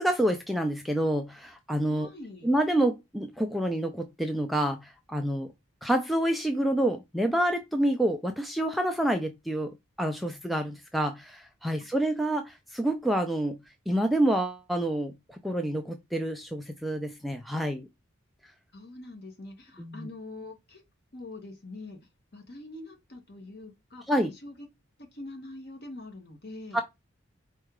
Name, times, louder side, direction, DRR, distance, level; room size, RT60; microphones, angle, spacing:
voice 1, 0.0-2.1 2.4-5.5 5.8-13.6 13.9-17.8 19.8-20.1 24.1-24.3 26.7-26.8, right 1 dB, ahead, 0.3 m, -28 dB
voice 2, 1.9-2.5 11.8-12.0 18.7-20.8 21.1-22.0 22.3-24.7 25.1-26.8, left 2 dB, 50° left, 1.2 m, -44 dB
4.5 x 2.3 x 4.7 m
head